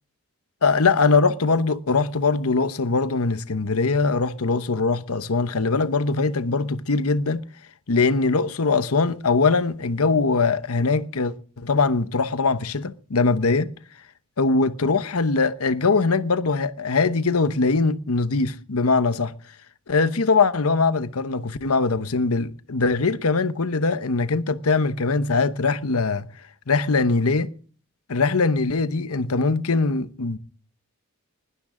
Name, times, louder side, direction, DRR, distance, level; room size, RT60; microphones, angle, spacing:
voice 1, 0.6-7.4 7.9-13.7 14.4-19.3 19.9-26.3 26.7-27.5 28.1-30.4, left 4 dB, 80° left, 0.9 m, -22 dB
20.5 x 12.5 x 3.8 m
head